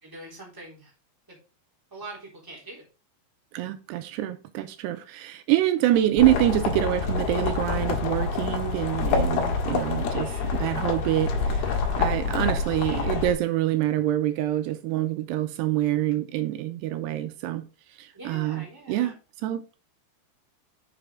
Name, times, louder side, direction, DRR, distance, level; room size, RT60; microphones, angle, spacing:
voice 1, 0.0-0.9 1.3-1.4 1.9-2.8 5.9-6.0 10.1-10.7 12.8-13.2 18.1-19.1, right 2 dB, 5° right, 2.9 m, -44 dB
voice 2, 3.5-17.6 18.0-19.2 19.4-19.8, right 14 dB, 85° right, 2.8 m, -26 dB
sound 1, 6.2-13.3, left 5 dB, 70° left, 3.4 m, -27 dB
7.8 x 7.0 x 3.8 m
omnidirectional pair, 4.9 m